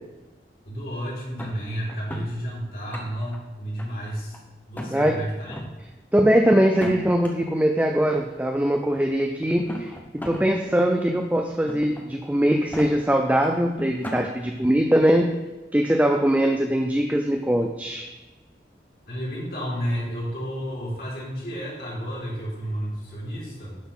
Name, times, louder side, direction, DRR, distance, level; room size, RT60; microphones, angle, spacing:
voice 1, 0.6-4.4 4.7-5.6 19.1-23.8, equal, 55° left, -5 dB, 3.3 m, -31 dB
sound 1, 1.4-2.3 2.7-3.4 3.8-4.4 4.7-4.9 5.4-5.7 6.6-7.3 8.3-8.4 9.5-10.5 10.9-11.0 11.7-12.0 12.5-12.9 13.4-13.5 13.8-14.3, left 1 dB, 10° left, 0.9 m, -35 dB
voice 2, 6.1-15.3 15.7-18.1, equal, 10° right, 4 dB, 0.4 m, -21 dB
11.5 x 4.2 x 5.5 m, 1.1 s
head